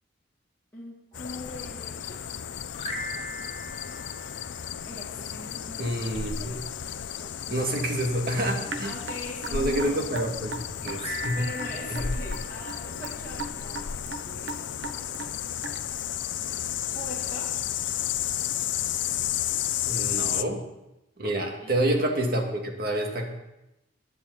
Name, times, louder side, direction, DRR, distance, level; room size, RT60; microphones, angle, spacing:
voice 1, 0.7-2.3 4.9-6.0 6.3-6.9 7.2-7.7 8.8-10.0 11.1-15.4 16.9-17.6 21.2-21.8, left 1 dB, 15° left, -6 dB, 1.9 m, -42 dB
sound 1, 1.1-20.4, left 10 dB, 85° left, 0.5 m, -33 dB
sound 2, 2.7-5.2 10.9-13.5, left 2 dB, 35° left, 1.5 m, -39 dB
voice 2, 5.8-6.6 7.5-8.9 9.5-10.5 10.8-11.4 11.9-12.0 19.9-20.6 21.2-23.3, right 1 dB, 55° right, 1 dB, 2.2 m, -28 dB
Raindrop / Drip, 8.7-16.0, right 3 dB, 75° right, 1.0 m, -38 dB
15.0 x 10.5 x 4.1 m, 0.92 s
head